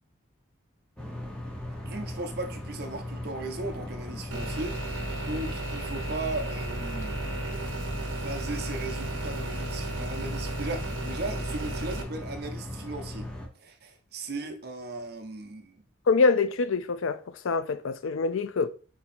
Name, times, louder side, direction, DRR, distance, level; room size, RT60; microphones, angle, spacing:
sound 1, 1.0-13.5, left 1 dB, 5° left, 0.8 m, -38 dB
voice 1, 1.8-7.4 8.1-13.3 13.5-15.8, right 2 dB, 50° right, 0.7 m, -37 dB
sound 2, 4.3-12.0, right 2 dB, 80° right, 0.9 m, -34 dB
voice 2, 16.1-17.2 17.4-18.7, left 4 dB, 85° left, 0.4 m, -24 dB
4.2 x 2.8 x 4.2 m
head